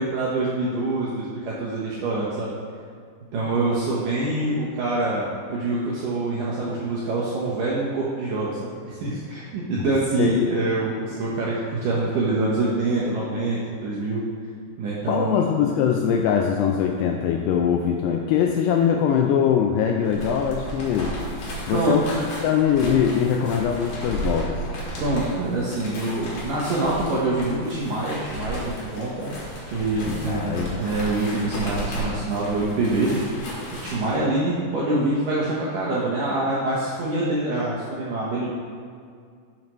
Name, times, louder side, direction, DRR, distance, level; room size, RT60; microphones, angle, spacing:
voice 1, 0.0-2.5 3.3-14.2 14.8-15.5 21.7-22.0 25.0-29.3 29.7-33.2 33.7-38.5, right 2 dB, 75° right, -6 dB, 2.0 m, -25 dB
voice 2, 10.2-10.6 15.1-21.2 21.7-22.1 22.4-24.7 30.0-30.8, left 8 dB, 85° left, 2 dB, 2.4 m, -22 dB
sound 1, 20.0-34.2, right 1 dB, 55° left, 2.9 m, -34 dB
11.0 x 7.4 x 3.1 m, 2.2 s
omnidirectional pair, 5.2 m